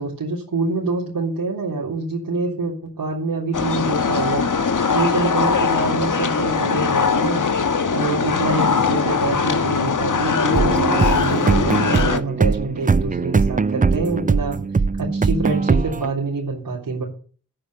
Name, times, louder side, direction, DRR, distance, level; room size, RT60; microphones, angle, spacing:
voice 1, 0.0-4.5 4.9-7.5 7.9-14.6 15.0-17.0, right 3 dB, 85° right, -5 dB, 3.7 m, -26 dB
sound 1, 3.5-12.2, left 5 dB, 60° left, 1.5 m, -20 dB
sound 2, 10.5-16.1, right 4 dB, 25° right, 0.6 m, -20 dB
10.0 x 9.8 x 8.1 m, 0.42 s
cardioid pair, 40°, 34 cm